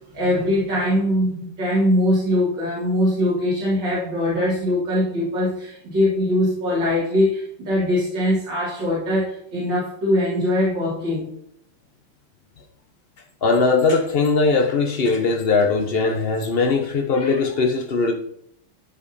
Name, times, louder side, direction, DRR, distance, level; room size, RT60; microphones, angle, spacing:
voice 1, 0.1-11.3, left 1 dB, 55° right, 3.1 m, -22 dB
voice 2, 13.4-18.1, left 4 dB, 90° left, 0.5 m, -20 dB
12.5 x 5.4 x 4.2 m
omnidirectional pair, 2.4 m